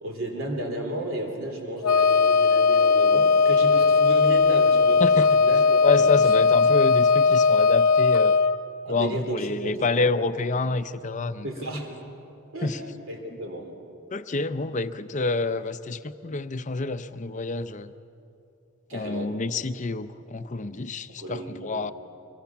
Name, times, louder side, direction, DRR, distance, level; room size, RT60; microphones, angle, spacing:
voice 1, 0.0-6.1 8.8-9.9 11.4-11.9 12.5-13.7 18.9-19.3 21.1-21.9, right 1 dB, 60° right, 3 dB, 3.2 m, -33 dB
Wind instrument woodwind instrument, 1.8-8.6, left 4 dB, 90° left, 0.7 m, -19 dB
voice 2, 5.8-8.4 8.9-11.5 12.6-12.8 14.1-17.9 18.9-21.9, left 3 dB, 35° left, 11 dB, 0.6 m, -27 dB
24.5 x 22.0 x 5.9 m, 2.8 s
head